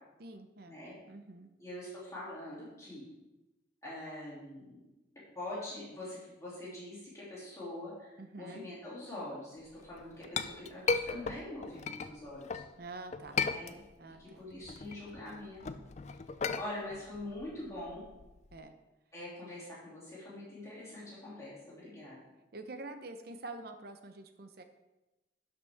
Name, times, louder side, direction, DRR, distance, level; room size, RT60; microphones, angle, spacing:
voice 1, 0.2-0.8 1.1-1.5 8.2-8.6 12.8-13.4 14.0-14.7 18.5-18.7 22.5-24.6, right 2 dB, 55° right, 8 dB, 0.8 m, -46 dB
voice 2, 1.6-3.1 3.8-4.8 5.3-12.6 13.4-13.8 14.2-15.9 16.6-18.0 19.1-22.2, left 1 dB, 15° left, -8 dB, 2.9 m, -44 dB
Chink clink, 9.8-12.7 13.1-14.2 14.5-18.6, left 5 dB, 35° left, 0.3 m, -36 dB
11.5 x 5.9 x 3.5 m, 1.0 s
head